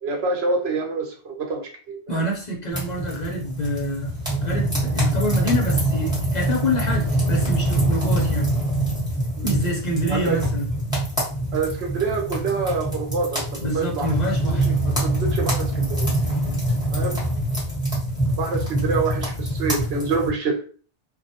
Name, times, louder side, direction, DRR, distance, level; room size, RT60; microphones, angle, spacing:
voice 1, 0.0-2.2 9.4-9.5 10.1-10.4 11.5-14.1 14.7-14.8 15.0-16.1 16.9-17.2 18.3-20.6, right 4 dB, 75° right, 2 dB, 0.8 m, -26 dB
voice 2, 2.1-4.1 4.4-8.5 9.4-10.7 13.6-14.7, equal, 50° left, -1 dB, 0.6 m, -26 dB
sound 1, 2.7-20.3, right 1 dB, 5° right, 1.0 m, -24 dB
2.2 x 2.1 x 2.7 m, 0.41 s
omnidirectional pair, 1.1 m